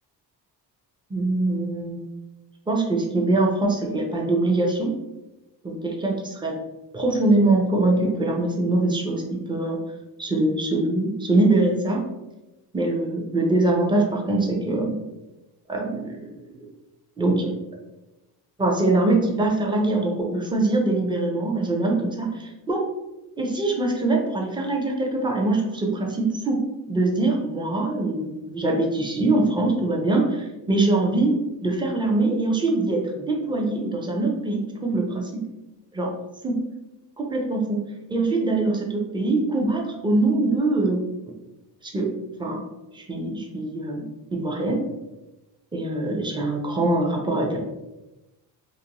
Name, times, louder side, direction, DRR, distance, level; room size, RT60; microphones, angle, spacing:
voice 1, 1.1-2.0 2.7-5.0 5.6-6.5 6.9-9.8 10.2-12.1 12.7-14.9 15.7-16.6 17.2-17.5 18.6-22.9 23.4-35.5 35.9-36.1 36.4-36.7 37.2-41.0 41.8-42.1 42.4-42.6 42.9-44.9 45.7-47.6, right 2 dB, 10° right, 0 dB, 0.5 m, -23 dB
2.5 x 2.2 x 2.8 m, 1.0 s
cardioid pair, 100°, 42 cm